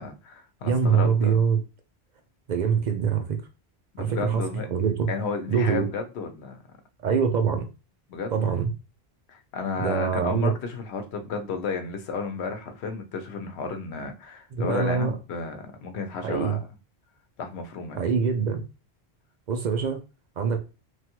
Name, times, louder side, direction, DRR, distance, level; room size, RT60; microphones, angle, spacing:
voice 1, 0.0-1.4 3.9-4.7 5.1-6.6 8.1-8.6 9.3-16.7 17.4-18.2, left 4 dB, 90° left, 0.9 m, -33 dB
voice 2, 0.6-1.6 2.5-3.4 4.0-4.4 4.7-5.1 5.5-5.9 7.0-7.7 8.3-8.7 9.8-10.5 14.5-15.1 16.2-16.6 18.0-18.6 19.5-20.0 20.4-20.6, right 6 dB, 55° right, 0.5 m, -24 dB
3.2 x 2.2 x 2.9 m
omnidirectional pair, 1.1 m